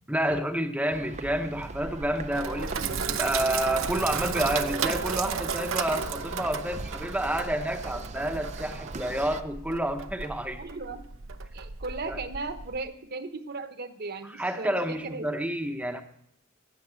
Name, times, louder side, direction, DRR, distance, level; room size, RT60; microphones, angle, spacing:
voice 1, 0.1-10.6 12.1-12.2 14.2-16.0, right 1 dB, 5° right, 0.8 m, -29 dB
sound 1, 0.9-9.4, right 3 dB, 35° right, 0.6 m, -40 dB
Sink (filling or washing), 1.8-12.8, right 6 dB, 85° right, 0.8 m, -34 dB
voice 2, 10.6-11.1 11.5-15.3, right 3 dB, 50° right, 1.1 m, -37 dB
15.5 x 7.3 x 8.7 m
head